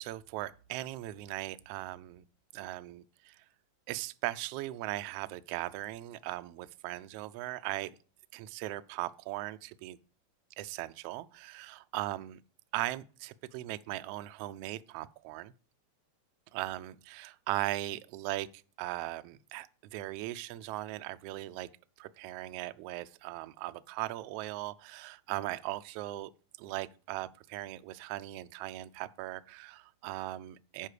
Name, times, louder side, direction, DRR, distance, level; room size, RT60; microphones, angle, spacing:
voice 1, 0.0-2.2 2.5-3.4 3.9-8.0 8.3-10.0 10.6-12.4 12.7-15.5 16.5-21.7 22.0-26.3 26.6-30.9, right 16 dB, 80° right, 1.4 m, -39 dB
9.8 x 4.8 x 6.6 m
omnidirectional pair, 3.3 m